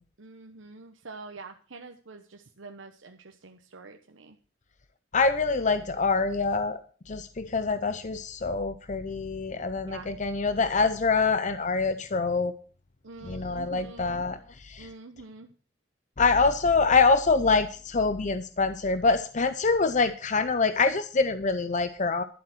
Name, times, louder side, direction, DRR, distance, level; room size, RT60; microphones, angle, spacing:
voice 1, 0.2-4.4 9.9-10.1 13.0-14.2 14.8-15.5, right 3 dB, 75° right, 4 dB, 1.0 m, -46 dB
voice 2, 5.1-6.8 7.1-12.5 13.2-14.9 16.2-22.2, left 4 dB, 40° left, 11 dB, 0.6 m, -25 dB
11.5 x 8.0 x 6.0 m, 0.41 s
head